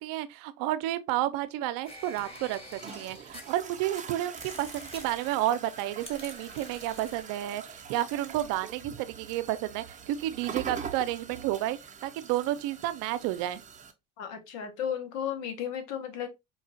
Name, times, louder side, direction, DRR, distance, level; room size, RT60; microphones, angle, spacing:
voice 1, 0.0-13.6, right 14 dB, 65° right, 0.6 m, -31 dB
sound 1, 1.8-4.0 4.4-8.2, equal, 15° left, 1.2 m, -48 dB
sound 2, 2.2-13.9, right 6 dB, 20° right, 0.5 m, -44 dB
voice 2, 14.2-16.3, left 8 dB, 85° left, 1.0 m, -34 dB
4.4 x 2.3 x 2.6 m
supercardioid pair, 95°, 36 cm